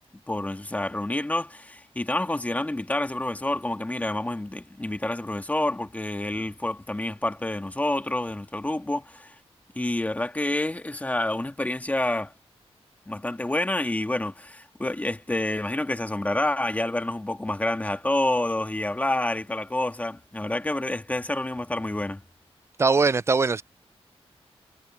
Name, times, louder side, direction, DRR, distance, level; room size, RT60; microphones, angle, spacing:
voice 1, 0.3-9.4 9.8-12.3 13.1-22.2, left 1 dB, 15° left, 1.7 m, -28 dB
voice 2, 22.8-23.6, right 4 dB, 25° right, 0.3 m, -21 dB
wide cardioid pair, 110°, 11 cm